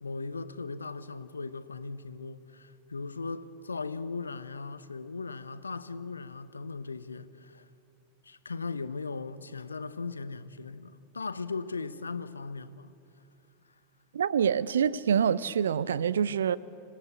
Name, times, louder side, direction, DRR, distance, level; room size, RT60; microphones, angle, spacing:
voice 1, 0.0-7.7 8.2-12.9, left 4 dB, 75° left, 0.9 m, -38 dB
voice 2, 14.1-16.6, right 8 dB, 65° right, 0.6 m, -26 dB
26.5 x 16.0 x 8.6 m
figure-of-eight pair, 90°, 0 cm